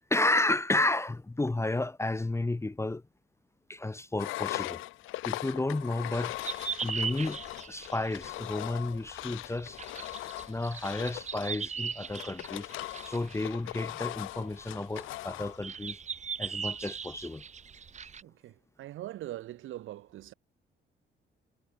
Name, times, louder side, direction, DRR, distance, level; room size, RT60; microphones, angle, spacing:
voice 1, 0.1-3.0 3.7-4.8 5.2-6.4 6.8-7.4 7.7-9.8 10.5-12.7 13.0-16.0 16.4-17.4, left 2 dB, 15° left, 0.9 m, -31 dB
Engine, 4.2-15.6, left 18 dB, 85° left, 0.5 m, -40 dB
sound 1, 6.1-18.2, right 6 dB, 35° right, 1.1 m, -39 dB
voice 2, 18.2-20.3, right 14 dB, 85° right, 4.3 m, -42 dB
cardioid pair, 90°, 20 cm